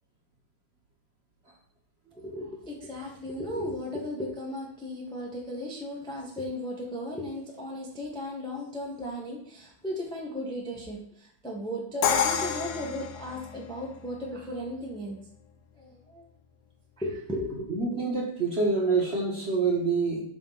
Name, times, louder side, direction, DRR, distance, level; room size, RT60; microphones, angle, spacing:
voice 1, 2.1-15.2 15.8-16.2 17.0-18.1, left 1 dB, 5° left, -2 dB, 1.1 m, -36 dB
Crash cymbal, 12.0-13.9, left 7 dB, 65° left, 1.3 m, -28 dB
voice 2, 17.7-20.2, right 4 dB, 30° right, -2 dB, 1.7 m, -26 dB
11.5 x 4.6 x 4.2 m, 0.70 s
omnidirectional pair, 2.3 m